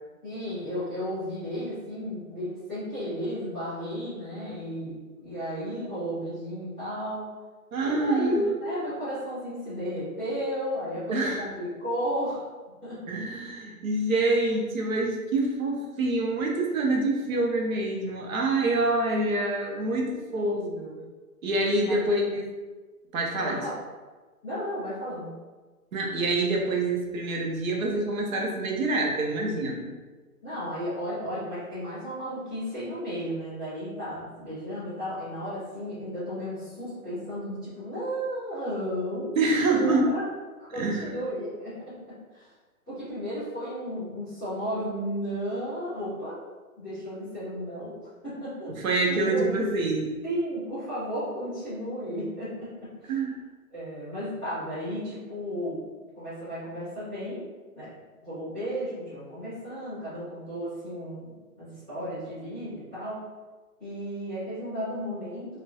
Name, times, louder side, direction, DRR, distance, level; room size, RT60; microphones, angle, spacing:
voice 1, 0.2-7.3 7.8-12.4 12.8-13.0 20.0-21.0 21.8-22.2 23.4-23.8 24.4-25.3 30.4-40.2 40.6-41.9 42.3-42.5 42.9-46.3 46.8-49.6 50.2-52.7 53.0-53.2 53.7-55.8 56.1-57.4 57.7-57.9 58.2-63.2 63.8-65.5, equal, 5° right, -20 dB, 0.4 m, -33 dB
voice 2, 7.7-8.5 11.1-11.5 13.1-20.1 20.3-20.6 21.4-22.4 23.1-23.6 25.9-29.9 39.4-40.1 40.7-41.1 48.8-50.1 53.1-53.3, right 2 dB, 65° right, 0 dB, 0.7 m, -26 dB
2.6 x 2.2 x 2.3 m, 1.3 s
hypercardioid pair, 145°, 44 cm